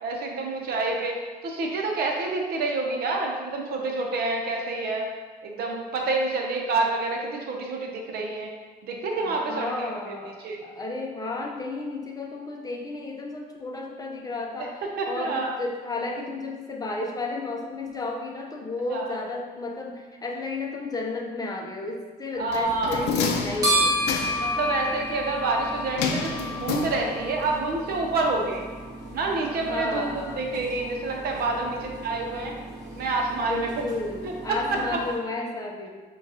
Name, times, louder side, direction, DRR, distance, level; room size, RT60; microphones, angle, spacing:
voice 1, 0.0-5.1 5.4-8.5 8.8-10.2 10.4-10.6 14.6-14.7 15.0-15.5 18.9-19.2 22.4-23.3 24.4-28.6 29.1-32.6 32.9-33.7 34.2-34.8, right 3 dB, 65° right, 1 dB, 0.7 m, -28 dB
voice 2, 9.2-24.0 29.6-30.5 33.5-35.9, left 3 dB, 20° left, 0 dB, 0.5 m, -33 dB
sound 1, 22.5-24.6 26.0-27.4 27.7-27.8, left 5 dB, 85° left, 0.5 m, -29 dB
sound 2, 22.6-35.1, equal, 20° right, 1.3 m, -32 dB
6.9 x 2.3 x 2.8 m, 1.4 s
cardioid pair, 110°, 17 cm